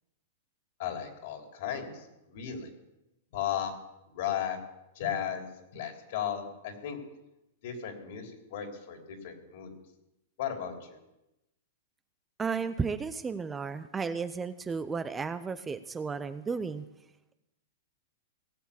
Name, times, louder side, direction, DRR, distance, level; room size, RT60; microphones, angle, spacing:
voice 1, 0.8-2.7 3.3-3.7 4.1-4.6 4.9-7.0 7.6-9.7 10.4-11.0, left 9 dB, 60° left, 3 dB, 3.4 m, -35 dB
voice 2, 12.4-16.8, right 5 dB, 15° right, 12 dB, 0.5 m, -33 dB
18.0 x 7.2 x 8.5 m, 0.91 s
hypercardioid pair, 150°, 0 cm